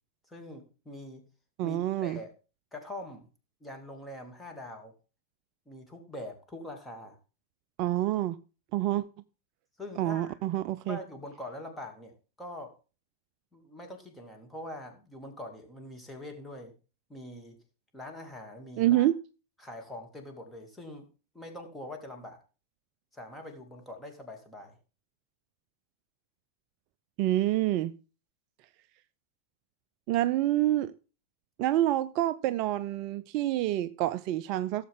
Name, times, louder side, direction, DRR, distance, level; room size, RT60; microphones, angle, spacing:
voice 1, 0.3-1.2 1.6-2.3 2.7-3.3 3.6-4.9 5.7-7.2 9.8-10.4 10.9-12.7 13.5-16.7 17.1-17.6 17.9-19.1 19.6-21.0 21.3-22.4 23.1-24.7, left 1 dB, 10° left, 2.6 m, -43 dB
voice 2, 1.6-2.2 7.8-8.4 8.7-9.0 10.0-11.0 18.8-19.2 27.2-27.9 30.1-30.9 31.6-34.9, right 14 dB, 40° right, 0.4 m, -27 dB
16.5 x 7.3 x 3.7 m
figure-of-eight pair, 90°, 0 cm